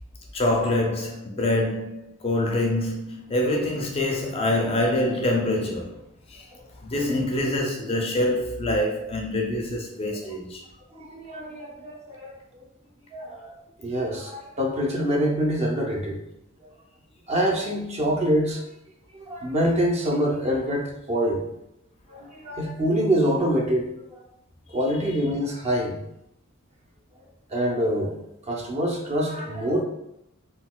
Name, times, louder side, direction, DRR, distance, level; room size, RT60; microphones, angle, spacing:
voice 1, 0.3-6.0 6.3-6.4 6.8-10.6, left 1 dB, 25° left, 0.4 m, -25 dB
voice 2, 10.9-12.6 13.1-16.2 16.6-16.7 17.3-18.6 19.1-21.4 22.1-23.9 24.7-26.0 27.5-28.2 28.5-29.8, equal, 30° right, 0.5 m, -25 dB
3.8 x 2.2 x 2.2 m
head